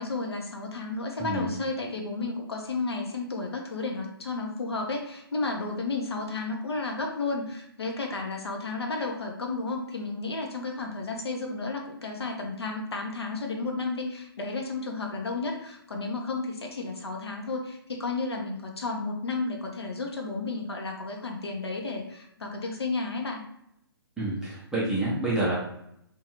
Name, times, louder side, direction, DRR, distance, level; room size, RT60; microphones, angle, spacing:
voice 1, 0.0-23.4, left 3 dB, 80° left, 1 dB, 0.7 m, -32 dB
voice 2, 1.2-1.5 24.2-25.6, right 2 dB, 5° right, -8 dB, 0.5 m, -28 dB
2.6 x 2.3 x 2.9 m, 0.76 s
figure-of-eight pair, 135°, 13 cm